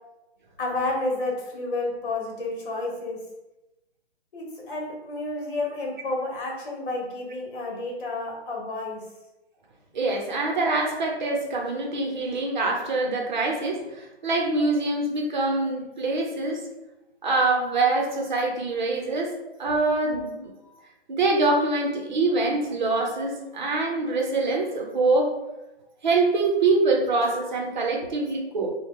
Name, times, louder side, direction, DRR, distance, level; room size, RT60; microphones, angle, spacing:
voice 1, 0.6-3.2 4.3-9.0, left 2 dB, 50° left, 0 dB, 1.4 m, -30 dB
voice 2, 9.9-16.6 17.2-19.3 19.6-20.5 21.1-25.3 26.0-28.7, right 3 dB, 45° right, 0 dB, 0.8 m, -24 dB
3.3 x 2.3 x 4.4 m, 1.0 s
hypercardioid pair, 170°, 32 cm